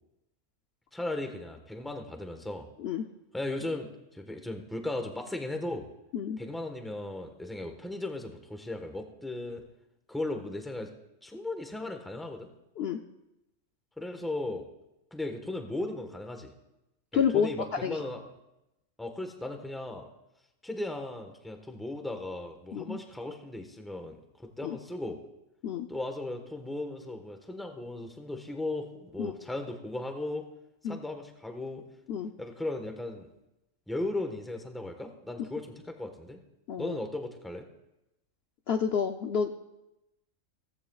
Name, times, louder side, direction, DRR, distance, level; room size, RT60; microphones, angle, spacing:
voice 1, 0.9-2.7 3.3-5.9 6.4-9.6 10.1-10.9 11.2-12.5 14.0-14.7 15.1-16.5 17.1-18.2 19.0-20.1 20.6-24.2 24.6-25.2 25.9-30.5 30.8-31.9 32.4-33.3 33.9-36.4 36.8-37.7, left 2 dB, ahead, 4 dB, 1.1 m, -36 dB
voice 2, 17.1-17.5 17.8-18.0 22.7-23.0 24.6-24.8 25.6-25.9 29.2-29.3 30.8-31.0 32.1-32.3 36.7-37.0 38.7-39.5, left 7 dB, 60° left, 5 dB, 0.8 m, -29 dB
17.0 x 15.0 x 2.4 m, 0.91 s
omnidirectional pair, 1.4 m